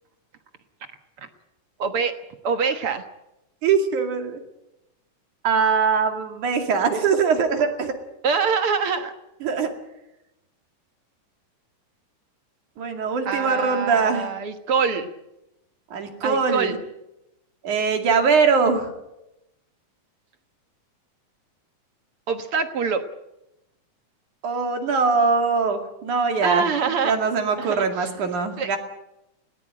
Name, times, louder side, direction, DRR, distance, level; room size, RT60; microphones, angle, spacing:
voice 1, 1.8-2.1 2.4-3.0 8.2-9.1 13.3-15.1 16.2-16.8 22.3-23.0 26.4-27.2 27.6-28.1 28.6-28.8, right 5 dB, 55° right, 8 dB, 1.9 m, -25 dB
voice 2, 3.6-4.4 5.4-7.9 9.4-9.7 12.8-14.3 15.9-16.8 17.6-18.9 24.4-28.8, right 5 dB, 70° right, 5 dB, 3.8 m, -22 dB
20.5 x 18.5 x 8.8 m, 0.90 s
omnidirectional pair, 3.7 m